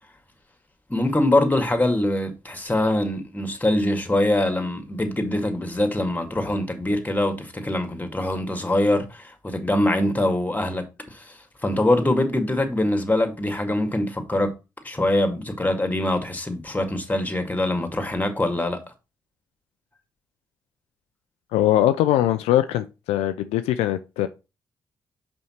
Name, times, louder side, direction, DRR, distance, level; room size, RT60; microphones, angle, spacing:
voice 1, 0.9-14.5 14.8-18.8, left 1 dB, 15° left, 2.1 m, -23 dB
voice 2, 21.5-24.3, left 13 dB, 75° left, 0.5 m, -21 dB
5.6 x 5.3 x 4.4 m
hypercardioid pair, 40°, 11 cm